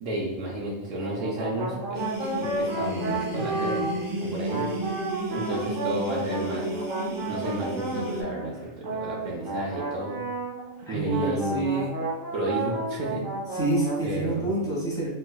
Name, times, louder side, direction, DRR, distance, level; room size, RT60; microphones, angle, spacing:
voice 1, 0.0-4.9 5.3-7.0 7.3-10.2 10.9-11.7 12.3-13.2 14.0-14.5, right 1 dB, 75° right, -3 dB, 1.0 m, -32 dB
sound 1, 0.9-4.1 4.5-10.8 11.1-14.0, right 3 dB, 50° right, 0.7 m, -32 dB
sound 2, 1.9-8.2, right 1 dB, 30° right, 0.3 m, -33 dB
voice 2, 10.9-11.9 13.5-15.1, right 2 dB, 5° left, -7 dB, 1.0 m, -27 dB
3.6 x 3.1 x 2.2 m, 0.98 s
omnidirectional pair, 1.3 m